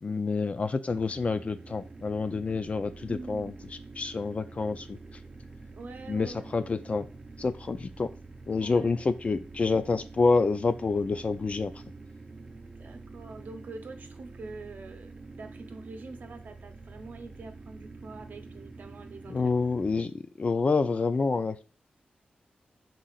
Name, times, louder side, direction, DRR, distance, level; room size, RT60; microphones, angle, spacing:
voice 1, 0.0-3.6 3.9-5.0 6.1-7.1 7.4-8.1 8.5-11.8 19.3-21.6, left 4 dB, 45° left, 10 dB, 0.4 m, -28 dB
sound 1, 0.9-20.0, right 3 dB, 30° right, 0.6 m, -47 dB
voice 2, 3.0-3.5 5.7-6.5 8.6-8.9 12.6-19.5, right 3 dB, 70° right, 6 dB, 0.7 m, -45 dB
5.7 x 3.9 x 2.4 m, 0.35 s
wide cardioid pair, 100°, 3 cm